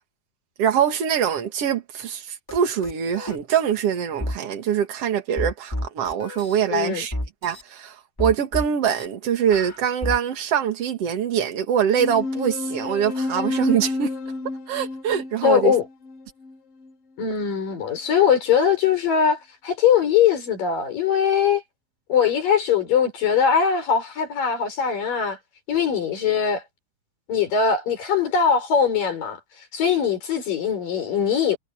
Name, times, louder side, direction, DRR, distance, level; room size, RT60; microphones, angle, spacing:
voice 1, 0.6-7.1 7.4-14.1 14.7-15.7, right 8 dB, 50° right, 2.6 m, -23 dB
sound 1, 2.5-2.6 2.8-3.4 4.2-4.4 5.4-6.6 7.1-7.6 8.2-9.1 9.5-10.2, left 1 dB, 5° left, 2.6 m, -30 dB
voice 2, 6.7-7.0 15.4-15.8 17.2-21.6 22.1-25.4 25.7-26.6 27.3-29.4 29.7-31.6, left 7 dB, 70° left, 6.6 m, -21 dB
sound 2, 12.0-16.9, left 3 dB, 55° left, 2.1 m, -30 dB
omnidirectional pair, 4.1 m